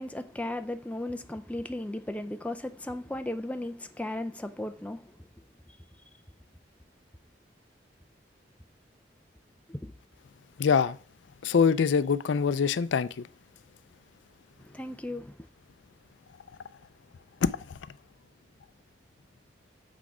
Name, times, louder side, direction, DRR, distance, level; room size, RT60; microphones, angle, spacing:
voice 1, 0.0-5.2 9.7-9.9 14.6-15.5, left 1 dB, 5° left, 0.5 m, -36 dB
voice 2, 10.6-11.0 11.4-13.3 17.4-17.8, left 6 dB, 85° left, 0.4 m, -24 dB
7.0 x 6.2 x 4.9 m
head